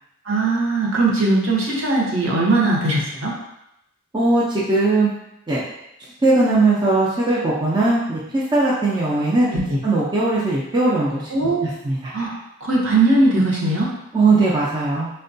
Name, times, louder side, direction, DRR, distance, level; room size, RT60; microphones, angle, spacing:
voice 1, 0.3-3.3 9.5-9.8 11.3-11.7 12.1-12.3 12.6-13.9, right 2 dB, 60° right, -4 dB, 0.8 m, -19 dB
voice 2, 4.1-5.1 5.5-5.6 6.2-9.5 9.8-12.1 14.1-15.1, right 2 dB, 20° right, -7 dB, 0.4 m, -19 dB
4.4 x 2.2 x 2.6 m, 0.84 s
head